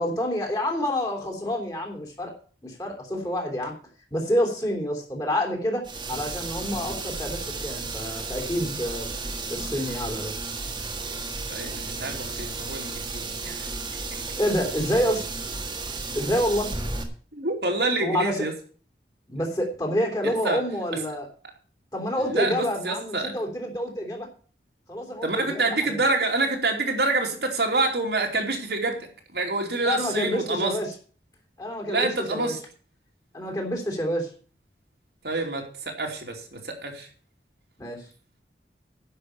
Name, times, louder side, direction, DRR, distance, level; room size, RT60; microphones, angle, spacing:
voice 1, 0.0-2.3 2.6-3.7 4.1-9.1 9.5-10.3 14.4-15.3 16.1-16.7 18.0-18.5 19.3-21.3 21.9-24.3 24.9-26.0 29.8-30.9 31.6-32.5 33.3-34.3 37.8-38.1, equal, 20° left, 1 dB, 3.2 m, -28 dB
sound 1, 5.8-17.0, right 3 dB, 25° right, 1.7 m, -33 dB
voice 2, 11.5-13.7 17.3-18.5 20.2-20.6 22.3-23.3 25.2-30.8 31.9-32.6 35.2-37.1, right 2 dB, 70° right, 1 dB, 2.9 m, -27 dB
10.5 x 6.4 x 8.5 m, 0.42 s
head